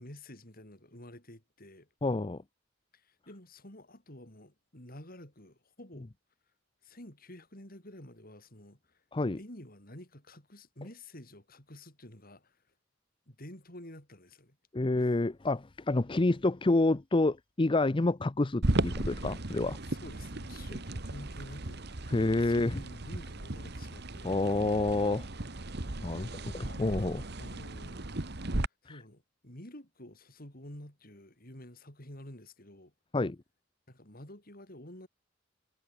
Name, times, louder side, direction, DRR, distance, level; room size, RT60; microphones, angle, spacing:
voice 1, 0.0-1.9 2.9-6.1 6.8-9.0 9.4-12.6 13.3-14.6 14.9-15.2 19.9-22.1 22.4-24.4 26.2-27.1 27.4-28.1 28.8-32.9 33.9-35.1, left 1 dB, 50° left, 7.5 m, -50 dB
voice 2, 2.0-2.4 9.1-9.4 14.7-19.8 22.1-22.8 24.2-25.3 26.0-27.2 33.1-33.4, left 2 dB, 25° left, 0.6 m, -28 dB
sound 1, 18.6-28.7, right 2 dB, 60° right, 1.7 m, -36 dB
head